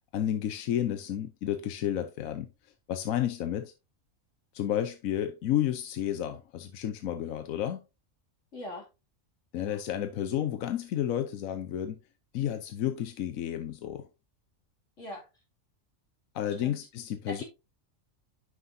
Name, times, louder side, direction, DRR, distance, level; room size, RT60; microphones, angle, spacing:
voice 1, 0.1-2.5 2.9-3.7 4.5-7.8 9.5-12.0 12.3-14.1 16.3-17.4, left 11 dB, 80° left, 1.1 m, -31 dB
voice 2, 8.5-8.9 9.6-9.8 15.0-15.3 16.6-16.8 17.3-17.4, left 1 dB, 65° left, 2.9 m, -41 dB
9.4 x 6.1 x 2.6 m
omnidirectional pair, 1.4 m